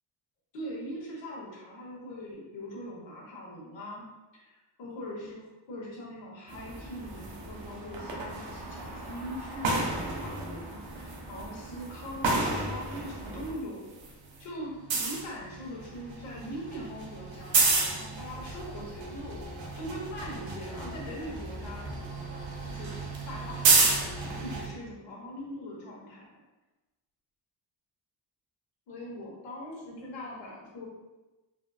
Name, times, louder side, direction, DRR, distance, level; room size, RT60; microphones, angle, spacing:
voice 1, 0.5-4.0 4.3-14.0 14.4-19.4 19.8-21.9 22.3-22.9 23.3-26.2 28.9-30.9, equal, 85° left, -4 dB, 1.2 m, -41 dB
sound 1, 6.5-13.5 13.8-24.7, right 3 dB, 90° right, 0.8 m, -32 dB
4.1 x 2.4 x 2.3 m, 1.1 s
cardioid pair, 120°, 44 cm